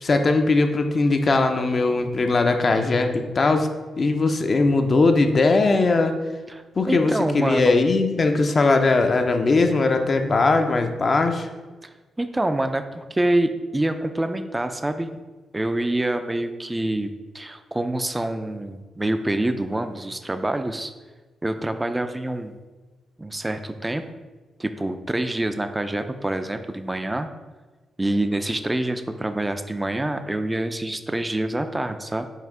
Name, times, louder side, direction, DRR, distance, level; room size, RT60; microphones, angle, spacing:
voice 1, 0.0-3.7 4.0-6.1 6.8-11.5, left 3 dB, 45° left, 5 dB, 0.5 m, -20 dB
voice 2, 6.5-7.8 11.8-15.2 15.5-20.9 21.4-22.5 23.2-24.0 24.6-27.3 28.0-32.3, right 1 dB, 20° right, 9 dB, 0.3 m, -26 dB
5.5 x 2.6 x 3.6 m, 1.3 s
cardioid pair, 60°, 0 cm